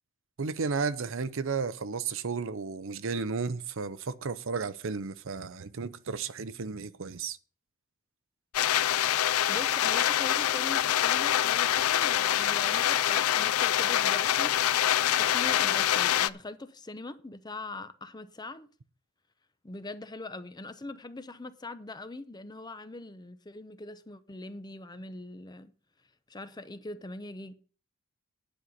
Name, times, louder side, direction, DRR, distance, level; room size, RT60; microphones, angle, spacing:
voice 1, 0.4-7.4, right 5 dB, 65° right, 0.7 m, -33 dB
sound 1, 8.5-16.3, left 11 dB, 90° left, 0.4 m, -25 dB
voice 2, 9.5-18.7 19.6-25.7 26.3-27.5, left 2 dB, 20° left, 0.7 m, -42 dB
10.0 x 5.6 x 7.9 m
head